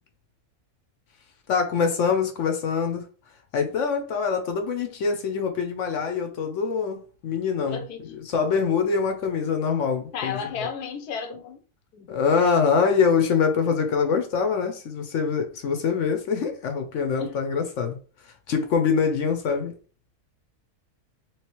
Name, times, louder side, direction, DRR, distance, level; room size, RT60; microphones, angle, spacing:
voice 1, 1.5-3.1 3.5-7.8 8.1-10.5 12.1-18.0 18.5-19.7, left 5 dB, 65° left, 0.8 m, -24 dB
voice 2, 7.7-8.1 10.1-11.6 11.9-12.2 17.2-17.4, left 6 dB, 90° left, 1.2 m, -33 dB
3.1 x 3.1 x 3.0 m
omnidirectional pair, 1.6 m